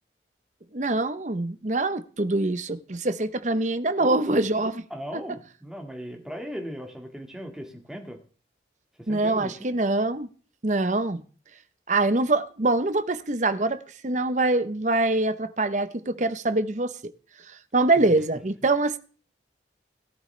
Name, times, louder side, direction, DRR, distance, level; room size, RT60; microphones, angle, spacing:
voice 1, 0.7-4.9 9.1-10.3 10.6-11.2 11.9-17.1 17.7-19.0, right 2 dB, 40° right, 0.8 m, -24 dB
voice 2, 3.8-4.4 4.9-8.2 9.0-9.7 17.9-18.2, equal, 5° right, 1.8 m, -38 dB
18.0 x 12.5 x 3.3 m
head